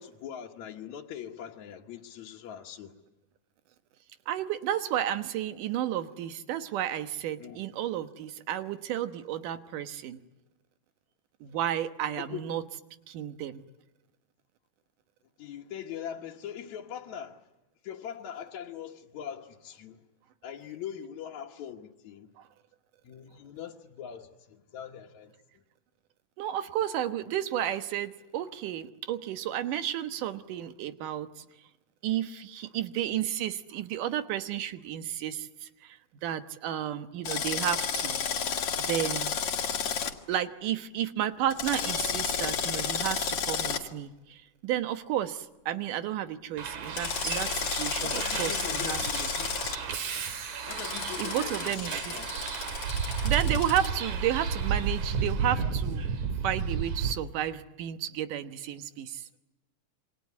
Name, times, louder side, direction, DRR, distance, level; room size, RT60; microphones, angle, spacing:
voice 1, 0.0-2.9 7.4-7.6 12.2-12.4 15.4-17.4 17.8-20.0 20.4-22.3 23.0-25.3 48.0-49.6 50.7-52.3 53.4-53.6, left 9 dB, 65° left, 2.5 m, -42 dB
voice 2, 4.3-10.2 11.4-12.6 13.1-13.6 22.4-22.5 26.4-31.4 32.0-38.2 38.8-39.3 40.3-49.3 51.2-52.2 53.0-56.0 56.4-59.3, right 11 dB, 85° right, 2.8 m, -32 dB
Drill, 37.2-40.1 41.5-43.8 46.9-49.8 50.7-53.9, left 7 dB, 50° left, 2.4 m, -32 dB
Bus, 46.6-57.1, right 6 dB, 70° right, 3.3 m, -32 dB
28.0 x 24.0 x 8.4 m
omnidirectional pair, 3.6 m